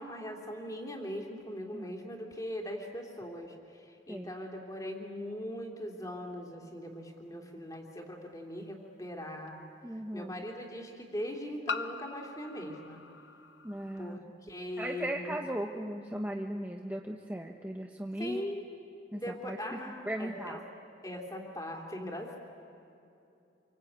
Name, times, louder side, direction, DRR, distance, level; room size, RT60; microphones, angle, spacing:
voice 1, 0.0-9.6 9.9-13.0 14.0-15.4 18.2-18.7 19.1-20.6 21.0-22.4, equal, 20° left, 1 dB, 2.9 m, -40 dB
voice 2, 1.7-2.1 4.1-4.3 9.8-10.3 13.6-14.2 14.8-18.5 19.1-19.6 20.1-20.6, right 1 dB, 10° right, 1 dB, 0.9 m, -37 dB
sound 1, 7.7-7.8 9.5-9.6 11.7-14.2, left 4 dB, 75° left, 0.8 m, -41 dB
28.0 x 24.0 x 8.7 m, 2.8 s
head